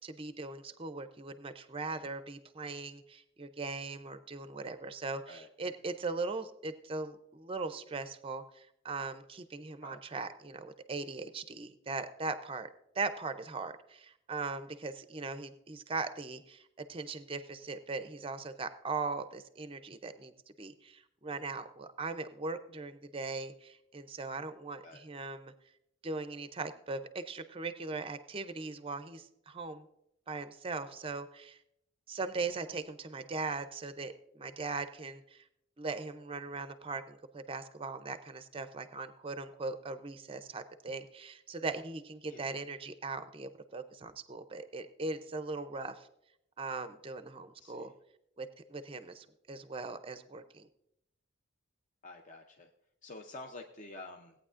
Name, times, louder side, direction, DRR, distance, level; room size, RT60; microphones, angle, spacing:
voice 1, 0.0-12.7 12.9-16.6 16.9-20.3 20.6-25.5 26.0-29.9 30.3-31.6 32.1-35.4 35.8-46.1 46.6-47.9 48.4-50.7, right 3 dB, 25° right, 11 dB, 0.5 m, -39 dB
voice 2, 47.6-47.9 52.0-52.7 53.0-54.3, left 2 dB, 35° left, 3 dB, 0.6 m, -48 dB
17.5 x 9.0 x 2.5 m, 0.79 s
head